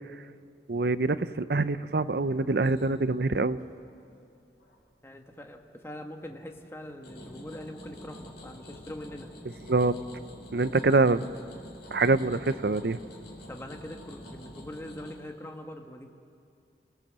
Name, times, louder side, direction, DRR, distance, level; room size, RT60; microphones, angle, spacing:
voice 1, 0.7-3.6 9.7-10.0 10.5-11.3 11.9-13.0, right 3 dB, 65° right, 14 dB, 0.6 m, -25 dB
sound 1, 2.6-4.8 5.2-5.7 6.2-15.2, left 1 dB, 75° left, 4.3 m, -47 dB
voice 2, 5.0-9.3 13.5-16.1, left 1 dB, 15° left, 3 dB, 1.5 m, -42 dB
29.0 x 18.0 x 7.5 m, 2.4 s
head